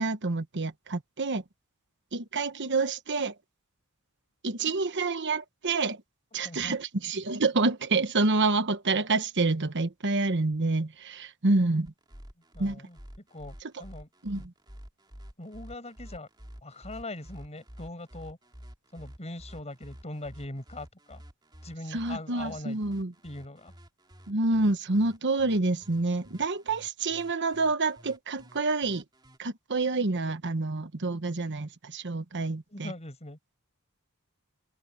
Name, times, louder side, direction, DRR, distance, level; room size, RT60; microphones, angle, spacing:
voice 1, 0.0-1.4 2.1-3.3 4.4-6.0 6.3-11.9 12.6-12.8 14.2-14.5 21.9-23.1 24.3-29.0 29.4-32.9, right 3 dB, 55° right, 1.2 m, -28 dB
voice 2, 6.4-6.8 12.5-14.1 14.4-14.5 15.4-16.3 16.6-18.4 18.9-21.2 21.6-22.8 23.2-23.7 32.7-33.4, left 1 dB, 30° left, 5.9 m, -41 dB
sound 1, 11.8-29.4, equal, 20° right, 2.8 m, -49 dB
open air
head